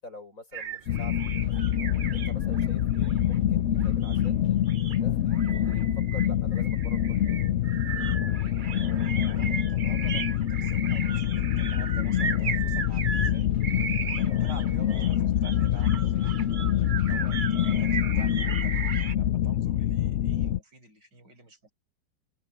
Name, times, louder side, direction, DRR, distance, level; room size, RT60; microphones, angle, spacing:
voice 1, 0.0-1.5 2.1-4.4 4.9-5.4 5.7-7.4, left 2 dB, 45° left, 6.8 m, -46 dB
sound 1, 0.5-19.1, right 6 dB, 50° right, 0.6 m, -37 dB
sound 2, 0.9-20.6, left 11 dB, 85° left, 0.6 m, -26 dB
voice 2, 2.0-2.3 9.2-13.5 14.1-16.3 17.0-21.7, right 4 dB, 70° right, 8.5 m, -50 dB
omnidirectional pair, 2.0 m